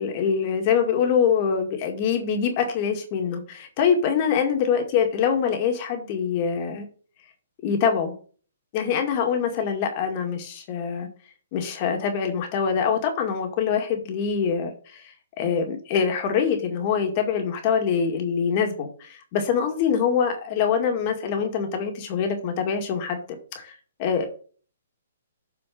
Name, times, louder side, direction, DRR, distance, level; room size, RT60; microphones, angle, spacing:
voice 1, 0.0-6.9 7.6-8.1 8.7-11.1 11.5-15.1 15.4-23.7 24.0-24.3, left 7 dB, 30° left, 4 dB, 2.1 m, -24 dB
7.7 x 5.1 x 6.9 m, 0.40 s
hypercardioid pair, 170°, 0 cm